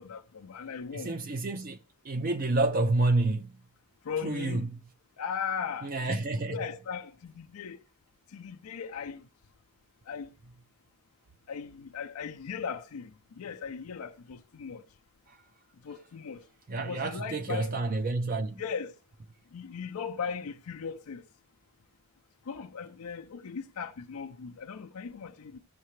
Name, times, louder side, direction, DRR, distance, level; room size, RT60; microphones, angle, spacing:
voice 1, 0.0-1.1 4.0-4.7 5.2-6.2 6.5-7.8 8.3-9.3 10.1-10.3 11.5-14.8 15.8-16.4 16.8-17.7 18.6-18.9 19.5-21.2 22.5-25.6, left 6 dB, 80° left, 0.5 m, -38 dB
voice 2, 0.9-1.8 2.0-3.6 4.2-4.8 5.8-6.6 15.3-15.4 16.7-18.6, right 2 dB, 40° right, 0.4 m, -29 dB
14.0 x 6.6 x 3.1 m
head